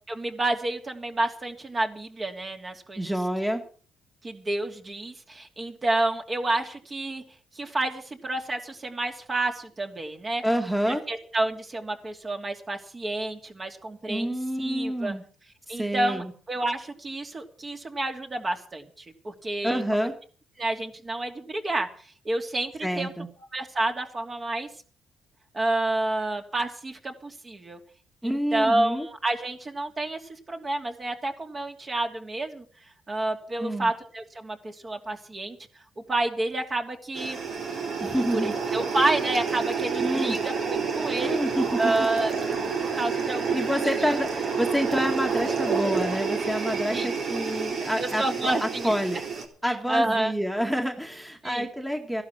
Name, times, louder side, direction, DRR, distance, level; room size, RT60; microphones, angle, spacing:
voice 1, 0.1-3.1 4.2-7.2 7.6-10.4 10.8-14.3 14.6-15.1 15.7-20.1 20.6-21.9 22.2-23.1 23.5-24.7 25.5-27.8 28.2-30.2 30.5-32.6 33.1-35.6 36.1-37.4 38.3-41.4 41.8-43.8 44.1-44.2 46.9-47.1 48.0-48.9 49.6-50.3 51.4-51.7, right 2 dB, 30° right, 4 dB, 2.8 m, -29 dB
voice 2, 3.0-3.7 10.4-11.0 14.1-15.2 15.7-16.3 19.6-20.2 22.8-23.3 28.2-29.1 33.6-33.9 38.0-38.5 40.0-40.4 41.2-42.1 43.5-49.2 49.6-52.2, equal, 5° right, 3 dB, 1.9 m, -28 dB
sound 1, 37.1-49.5, right 5 dB, 65° right, 4.1 m, -29 dB
15.0 x 12.0 x 6.0 m, 0.42 s
cardioid pair, 90°, 0 cm